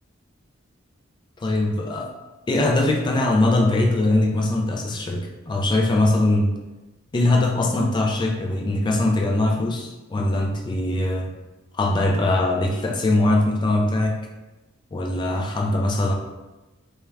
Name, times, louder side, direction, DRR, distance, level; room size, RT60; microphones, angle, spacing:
voice 1, 1.4-2.1 2.5-6.6 7.1-11.3 11.7-14.2 14.9-16.1, left 2 dB, 20° left, 1 dB, 0.3 m, -21 dB
2.4 x 2.2 x 3.1 m, 1.1 s
head